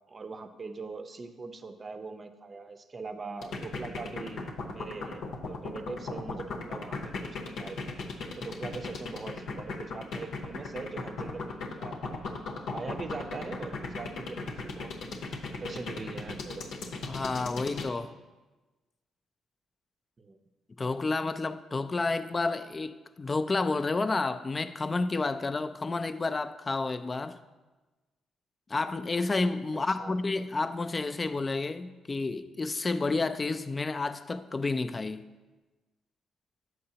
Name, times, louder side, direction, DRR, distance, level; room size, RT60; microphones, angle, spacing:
voice 1, 0.0-8.0 8.4-11.9 12.6-14.9 15.6-16.7 20.2-20.4 29.7-30.2, right 4 dB, 35° right, 0.6 m, -41 dB
sound 1, 3.4-17.9, left 4 dB, 80° left, 0.8 m, -37 dB
voice 2, 17.1-18.1 20.8-27.4 28.7-35.3, left 3 dB, 30° left, 0.4 m, -30 dB
7.7 x 7.7 x 2.8 m
cardioid pair, 90°, 0 cm